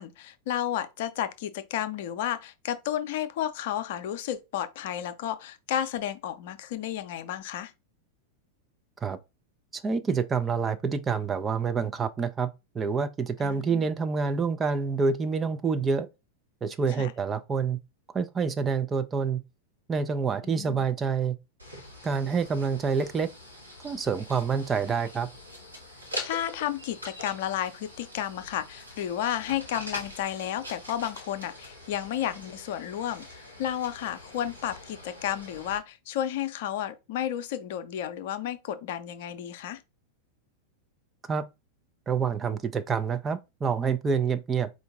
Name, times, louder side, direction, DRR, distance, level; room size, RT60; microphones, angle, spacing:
voice 1, 0.0-7.7 13.4-13.9 17.0-17.1 20.4-20.8 26.2-39.8, left 11 dB, 50° left, 0.5 m, -32 dB
voice 2, 9.7-12.5 12.7-16.1 16.6-17.8 18.1-19.4 19.9-21.4 22.0-23.3 23.8-25.3 41.3-41.5 42.1-44.7, right 5 dB, 20° right, 0.4 m, -27 dB
sound 1, 21.6-35.8, left 1 dB, 80° right, 1.1 m, -43 dB
4.6 x 2.5 x 3.4 m
figure-of-eight pair, 90°, 0 cm